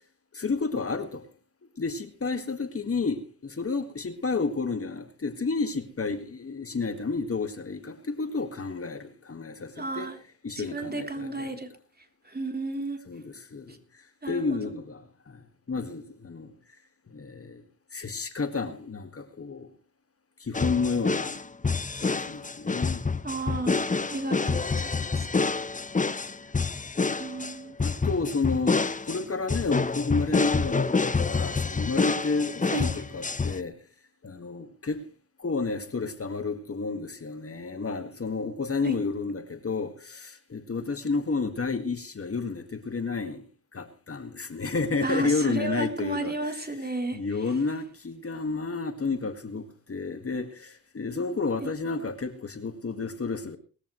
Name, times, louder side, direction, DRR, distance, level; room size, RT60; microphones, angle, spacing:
voice 1, 0.3-1.3 1.8-10.1 10.4-11.5 13.1-15.4 15.7-16.5 17.1-17.6 17.9-19.7 20.4-21.3 22.0-23.1 27.8-33.8 34.2-35.0 35.4-43.4 43.7-53.6, left 4 dB, 40° left, 1.9 m, -31 dB
voice 2, 9.8-10.2 10.6-11.7 12.2-13.0 14.2-14.6 23.2-23.8 24.1-25.6 27.2-27.8 32.7-32.9 38.8-39.0 45.0-47.4 51.6-51.7, right 2 dB, 30° right, 3.5 m, -33 dB
sound 1, 20.5-33.6, left 4 dB, 25° left, 0.9 m, -27 dB
20.0 x 14.0 x 3.2 m
cardioid pair, 60°, 34 cm